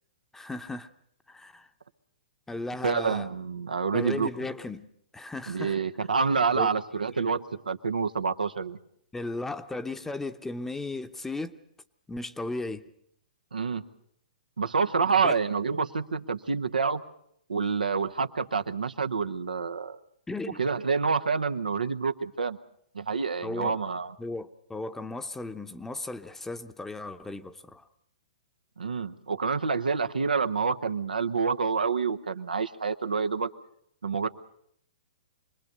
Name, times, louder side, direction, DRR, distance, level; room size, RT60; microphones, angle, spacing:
voice 1, 0.3-0.9 1.3-1.7 2.5-3.3 3.9-5.8 6.5-6.7 9.1-11.6 12.1-12.8 15.2-15.3 20.3-20.6 23.4-23.8 24.2-27.8, left 2 dB, 10° left, 0.9 m, -36 dB
voice 2, 2.8-4.3 5.5-8.8 13.5-13.8 14.6-17.0 17.5-20.0 20.6-22.6 22.9-24.1 28.8-33.5 34.0-34.3, right 5 dB, 85° right, 1.0 m, -27 dB
26.0 x 20.5 x 6.7 m
hypercardioid pair, 115°, 4 cm